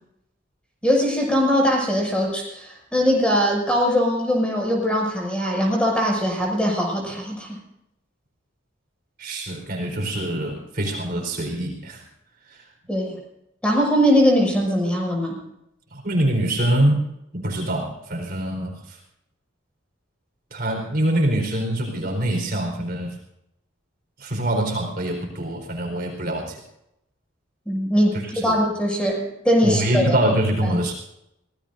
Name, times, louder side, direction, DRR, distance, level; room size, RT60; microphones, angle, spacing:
voice 1, 0.8-7.6 12.9-13.1 13.6-15.4 27.7-30.1, equal, 5° left, -1 dB, 6.5 m, -21 dB
voice 2, 9.2-12.0 12.5-12.6 15.9-17.0 17.3-19.0 20.5-23.2 24.2-26.6 28.1-28.6 29.6-30.9, right 1 dB, 50° right, 1 dB, 4.4 m, -24 dB
25.5 x 18.0 x 2.7 m, 0.80 s
head